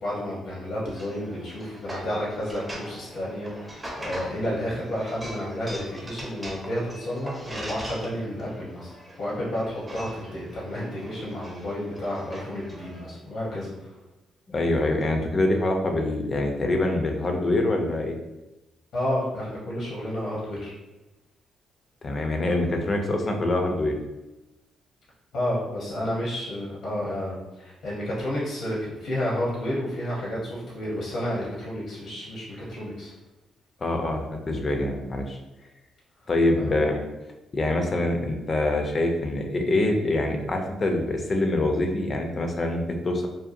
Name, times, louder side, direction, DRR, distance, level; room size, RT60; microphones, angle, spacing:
voice 1, 0.0-8.9 9.2-13.9 18.9-20.7 25.3-33.1 36.5-36.7, left 1 dB, 70° left, -6 dB, 0.8 m, -31 dB
sound 1, 0.8-13.0, right 1 dB, 15° right, 0.6 m, -41 dB
voice 2, 14.5-18.1 22.0-23.9 33.8-35.4 36.3-37.0 37.5-43.3, left 2 dB, 35° left, 3 dB, 0.4 m, -25 dB
2.6 x 2.2 x 2.5 m, 1.0 s
cardioid pair, 90°, 0 cm